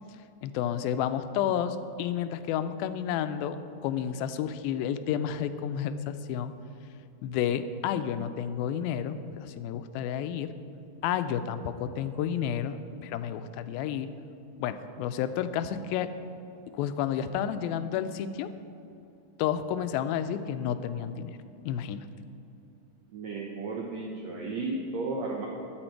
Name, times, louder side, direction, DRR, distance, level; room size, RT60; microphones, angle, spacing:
voice 1, 0.4-6.5 7.2-10.5 11.0-14.1 14.6-16.1 16.7-18.5 19.4-21.4 21.6-22.1, left 9 dB, 85° left, 11 dB, 2.4 m, -31 dB
voice 2, 23.1-25.5, right 3 dB, 80° right, -1 dB, 1.5 m, -34 dB
13.0 x 9.1 x 4.5 m, 2.7 s
omnidirectional pair, 4.2 m